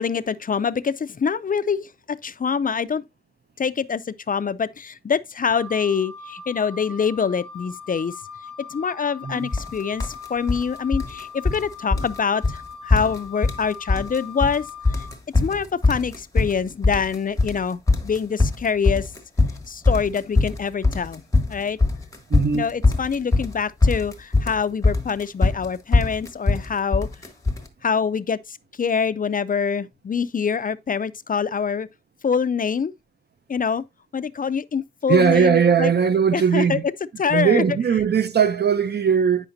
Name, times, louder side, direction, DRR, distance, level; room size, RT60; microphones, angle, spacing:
voice 1, 0.0-3.0 3.6-8.1 8.7-15.0 15.4-19.1 19.7-21.2 21.5-21.8 22.5-27.1 27.8-31.9 32.2-32.9 33.5-33.8 34.1-35.9 36.3-36.8 37.2-37.8, left 6 dB, 50° left, 0.4 m, -25 dB
Wind instrument woodwind instrument, 5.5-15.1, left 5 dB, 20° right, 1.3 m, -40 dB
sound 1, 9.5-9.7 10.0-10.6 10.9-11.7 11.9-12.2 12.4-12.6 12.9-13.6 13.9-14.6 14.9-27.7, left 3 dB, 15° left, 1.3 m, -21 dB
voice 2, 22.3-22.7 35.1-36.8 37.3-39.5, right 6 dB, 65° right, 0.7 m, -19 dB
9.0 x 5.7 x 2.6 m
wide cardioid pair, 105°, 18 cm